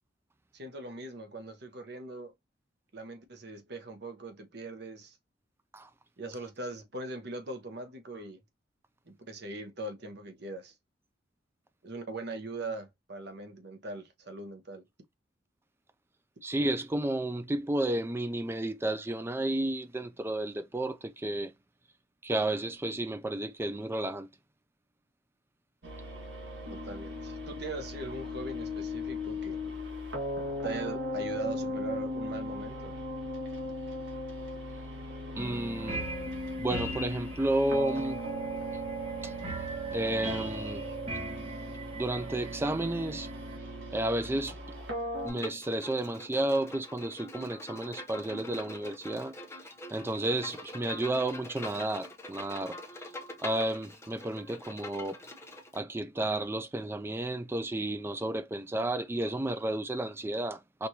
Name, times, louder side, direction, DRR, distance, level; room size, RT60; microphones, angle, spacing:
voice 1, 0.5-2.3 2.9-5.2 6.2-8.4 9.1-10.7 11.8-14.9 26.7-29.6 30.6-33.0, right 2 dB, 65° right, 0.9 m, -40 dB
voice 2, 16.4-21.5 22.2-24.3 35.4-36.1 36.6-38.2 39.2-39.3 39.9-40.9 41.9-43.3 43.9-44.6 45.2-49.4 49.9-52.8 53.4-55.2 55.7-60.9, right 1 dB, 15° right, 0.4 m, -32 dB
sound 1, 25.8-45.3, left 1 dB, 80° right, 1.5 m, -37 dB
sound 2, 35.4-43.6, right 1 dB, 35° right, 1.2 m, -42 dB
Bowed string instrument, 45.3-55.8, left 1 dB, 15° left, 0.7 m, -44 dB
4.6 x 2.6 x 2.8 m
head